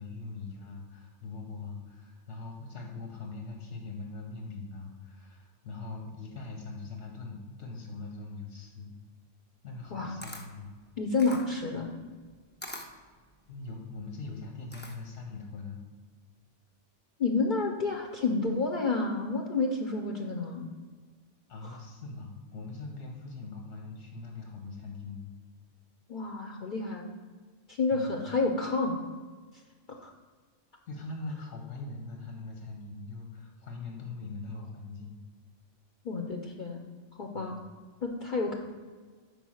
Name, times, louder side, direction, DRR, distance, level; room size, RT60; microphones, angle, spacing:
voice 1, 0.0-8.9 9.6-10.8 13.5-15.8 21.5-25.3 27.9-28.3 30.9-35.2 37.3-37.6, left 3 dB, 85° left, 1 dB, 1.3 m, -42 dB
Camera, 9.9-15.3, left 1 dB, 15° left, 0.4 m, -47 dB
voice 2, 11.0-11.9 17.2-20.7 21.6-21.8 26.1-27.1 27.7-29.0 30.0-30.1 36.0-36.8 37.1-37.6 38.0-38.5, left 3 dB, 50° left, 2 dB, 0.7 m, -30 dB
5.4 x 4.8 x 6.2 m, 1.5 s
omnidirectional pair, 1.2 m